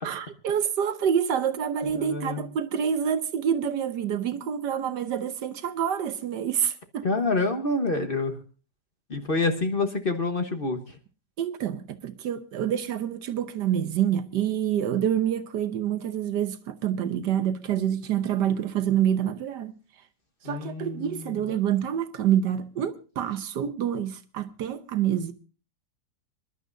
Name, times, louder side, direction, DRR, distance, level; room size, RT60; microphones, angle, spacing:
voice 1, 0.0-7.1 11.4-19.7 20.4-25.3, right 9 dB, 80° right, 1.6 m, -27 dB
voice 2, 1.9-2.5 7.0-8.3 9.1-10.8 20.4-21.3, left 3 dB, 35° left, 1.2 m, -27 dB
26.0 x 11.5 x 2.6 m
omnidirectional pair, 1.8 m